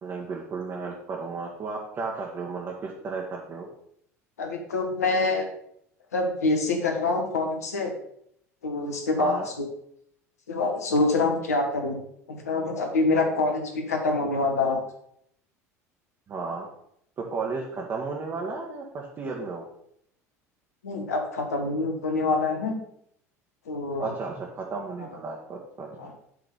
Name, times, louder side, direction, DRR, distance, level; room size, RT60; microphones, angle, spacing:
voice 1, 0.0-3.7 9.2-9.5 16.3-16.7 17.2-19.6 24.0-25.9, right 4 dB, 35° right, -2 dB, 1.4 m, -33 dB
voice 2, 4.4-5.5 6.1-7.9 8.6-9.7 10.5-12.0 12.3-14.8 20.8-22.8 23.7-24.1 26.0-26.1, left 3 dB, 80° left, 3 dB, 1.3 m, -26 dB
8.0 x 3.8 x 5.5 m, 0.71 s
figure-of-eight pair, 70°, 8 cm